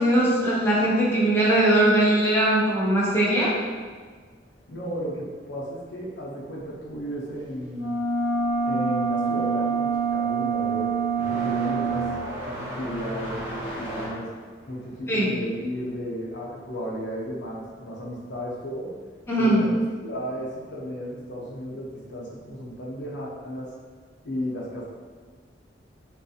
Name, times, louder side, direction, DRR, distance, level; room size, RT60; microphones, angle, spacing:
voice 1, 0.0-3.5 15.1-15.3 19.3-19.6, right 1 dB, 15° left, -7 dB, 0.7 m, -20 dB
voice 2, 4.7-8.0 8.6-10.9 11.3-12.0 12.4-14.3 14.7-18.9 19.4-23.7 24.2-24.9, equal, 70° left, -4 dB, 0.8 m, -34 dB
sound 1, 7.7-12.2, right 5 dB, 45° right, 0.5 m, -25 dB
sound 2, 9.5-17.5 17.8-18.8 19.8-19.9 20.7-20.8 22.6-22.7, equal, 10° right, 1.0 m, -37 dB
3.7 x 2.3 x 2.7 m, 1.5 s
head